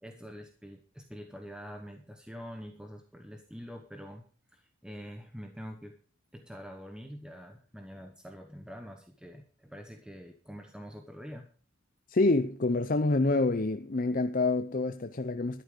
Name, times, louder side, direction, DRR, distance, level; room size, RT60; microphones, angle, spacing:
voice 1, 0.0-4.2 4.5-6.0 6.3-11.5, equal, 5° right, 1.1 m, -45 dB
voice 2, 12.1-15.6, left 2 dB, 40° left, 0.6 m, -27 dB
13.0 x 11.0 x 5.2 m
head